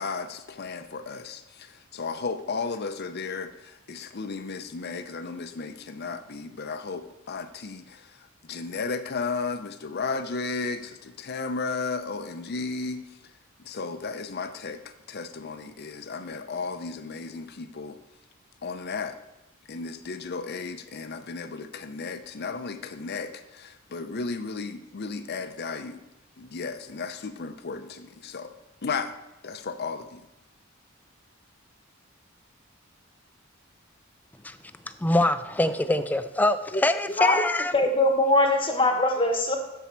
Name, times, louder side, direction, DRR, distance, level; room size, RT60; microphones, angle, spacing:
voice 1, 0.0-13.3 13.6-18.0 18.6-19.2 19.7-26.1 26.4-28.5 28.8-29.1 29.4-30.3, left 4 dB, 50° left, 10 dB, 0.6 m, -34 dB
voice 2, 35.0-37.7, left 1 dB, 10° left, 11 dB, 0.3 m, -24 dB
voice 3, 37.7-39.6, left 2 dB, 25° left, 4 dB, 0.9 m, -22 dB
7.2 x 7.0 x 4.4 m, 0.92 s
head